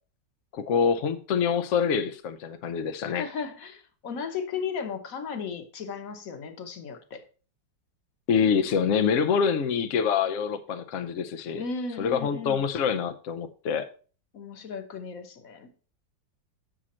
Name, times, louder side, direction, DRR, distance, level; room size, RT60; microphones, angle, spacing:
voice 1, 0.5-3.2 8.3-11.6 12.0-13.9, left 6 dB, 80° left, 0.6 m, -26 dB
voice 2, 3.0-7.2 11.6-12.6 14.3-15.7, left 5 dB, 50° left, 1.3 m, -35 dB
7.6 x 6.3 x 4.2 m
omnidirectional pair, 2.1 m